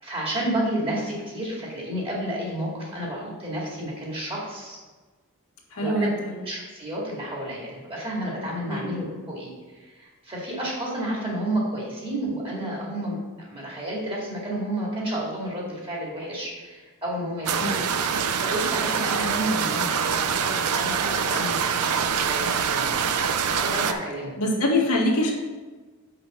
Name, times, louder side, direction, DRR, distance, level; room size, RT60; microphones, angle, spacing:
voice 1, 0.0-4.8 5.7-6.1 6.4-17.8 18.2-23.0 23.6-24.4, right 1 dB, 25° right, -4 dB, 2.3 m, -31 dB
voice 2, 5.7-6.4 8.7-8.9 17.6-17.8 24.4-25.3, left 1 dB, 85° left, -1 dB, 1.7 m, -24 dB
sound 1, 17.5-23.9, right 6 dB, 85° right, 0.6 m, -25 dB
5.8 x 5.2 x 6.3 m, 1.3 s
head